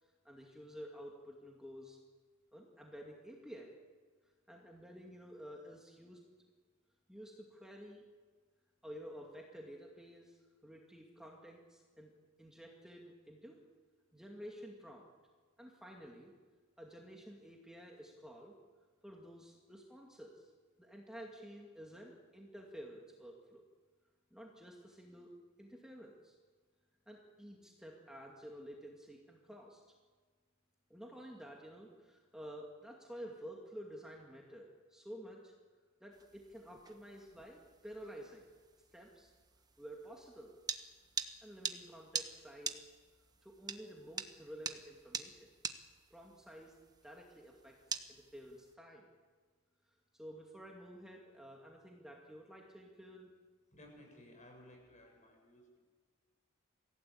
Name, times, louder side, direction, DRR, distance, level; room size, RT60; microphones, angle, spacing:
voice 1, 0.0-2.0 2.5-3.7 4.2-6.2 7.1-8.0 8.8-12.1 12.4-13.6 14.1-15.0 15.6-16.3 16.8-18.5 19.0-20.5 20.8-23.6 24.3-25.3 25.6-26.4 27.1-29.8 30.9-35.5 36.0-38.4 38.9-39.3 39.8-40.5 41.4-42.9 43.4-45.5 46.1-46.7 47.0-49.0 49.8-53.3, equal, 5° right, -1 dB, 2.3 m, -51 dB
sound 1, 36.1-48.7, right 5 dB, 20° right, 1.2 m, -46 dB
voice 2, 53.7-55.8, left 1 dB, 35° left, 2 dB, 7.5 m, -58 dB
26.5 x 16.5 x 8.7 m, 1.5 s
head